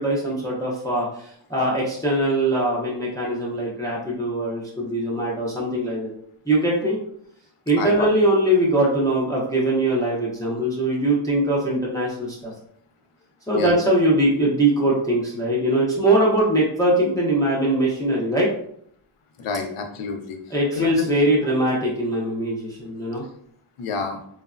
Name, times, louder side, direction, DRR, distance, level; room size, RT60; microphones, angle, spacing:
voice 1, 0.0-6.1 6.5-7.0 7.7-12.5 13.5-18.5 20.5-23.2, right 1 dB, 10° left, -4 dB, 0.4 m, -21 dB
voice 2, 7.8-8.1 13.5-13.7 19.4-20.4 20.7-21.1 23.8-24.2, left 4 dB, 90° left, 4 dB, 0.6 m, -28 dB
3.1 x 2.0 x 2.4 m, 0.67 s
wide cardioid pair, 175°, 49 cm